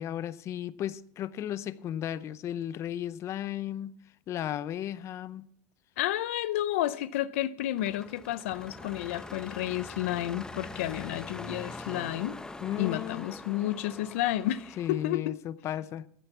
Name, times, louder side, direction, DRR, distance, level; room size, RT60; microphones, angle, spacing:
voice 1, 0.0-3.9 4.3-5.5 12.6-13.3 14.8-16.0, left 11 dB, 45° left, 0.6 m, -35 dB
voice 2, 6.0-12.4 12.8-15.4, left 14 dB, 90° left, 0.5 m, -31 dB
sound 1, 7.8-15.0, left 2 dB, 10° left, 0.8 m, -43 dB
14.5 x 9.2 x 5.9 m
supercardioid pair, 115°, 7 cm